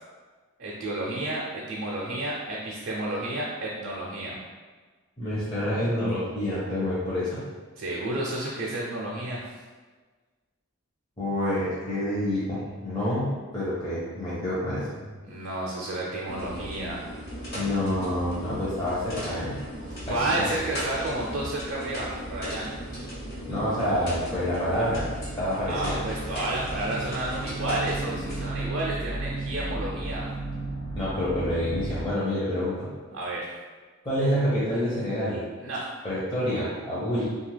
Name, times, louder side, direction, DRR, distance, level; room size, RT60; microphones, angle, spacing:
voice 1, 0.6-4.4 7.8-9.4 15.2-17.0 20.1-22.7 25.7-30.3 33.1-33.5 35.6-35.9, right 1 dB, 55° right, -4 dB, 0.5 m, -31 dB
voice 2, 5.2-7.4 11.2-14.9 17.5-19.6 20.1-20.4 23.5-25.0 25.4-26.0 31.0-32.9 34.0-35.4 36.0-37.2, left 1 dB, 20° left, -10 dB, 0.6 m, -27 dB
sound 1, 16.3-28.5, equal, 50° left, 0.9 m, -37 dB
sound 2, 22.0-32.1, right 2 dB, 80° left, 0.6 m, -36 dB
2.8 x 2.3 x 3.2 m, 1.4 s
head